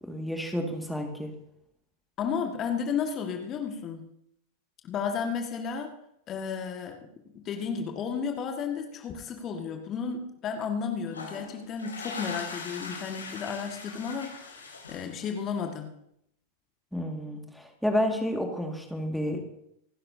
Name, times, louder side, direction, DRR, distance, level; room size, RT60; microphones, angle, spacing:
voice 1, 0.0-1.3 16.9-19.4, equal, ahead, 2 dB, 2.1 m, -30 dB
voice 2, 2.2-4.0 4.8-5.9 6.3-7.0 7.3-15.9, left 6 dB, 30° left, 4 dB, 1.8 m, -33 dB
sound 1, 11.1-15.6, left 4 dB, 75° left, 3.4 m, -41 dB
26.5 x 12.0 x 2.8 m, 0.75 s
figure-of-eight pair, 90°, 0 cm